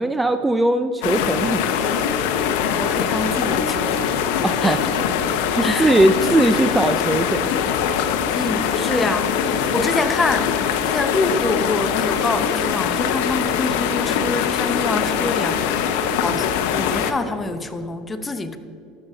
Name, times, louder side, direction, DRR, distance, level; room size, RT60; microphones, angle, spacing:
voice 1, 0.0-1.9 4.4-4.8 5.5-7.7, right 1 dB, 10° right, 9 dB, 0.4 m, -20 dB
sound 1, 1.0-17.1, left 8 dB, 75° left, 0.7 m, -22 dB
voice 2, 2.7-4.0 4.6-4.8 5.6-5.9 8.3-18.6, left 3 dB, 20° left, 9 dB, 0.7 m, -26 dB
12.5 x 8.0 x 3.9 m, 2.7 s
supercardioid pair, 105°, 0 cm